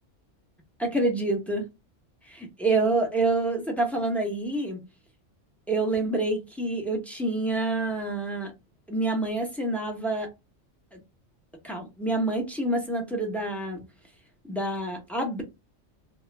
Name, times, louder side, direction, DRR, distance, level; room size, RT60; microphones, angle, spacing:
voice 1, 0.8-1.7 2.3-4.8 5.7-8.5 8.9-10.3 10.9-11.0 11.6-13.8 14.5-15.4, right 2 dB, ahead, 0.5 m, -27 dB
2.8 x 2.3 x 3.2 m
omnidirectional pair, 1.3 m